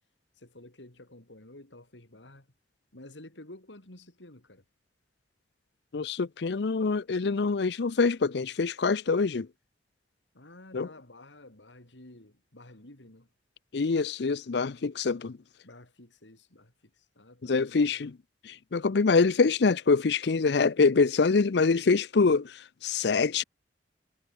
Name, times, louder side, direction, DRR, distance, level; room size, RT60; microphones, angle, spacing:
voice 1, 0.4-2.5 2.9-4.7 10.3-13.3 15.6-17.9, left 1 dB, 85° left, 3.6 m, -51 dB
voice 2, 5.9-9.5 10.7-10.9 13.7-15.4 17.4-18.2 18.4-23.4, left 4 dB, 65° left, 0.6 m, -25 dB
head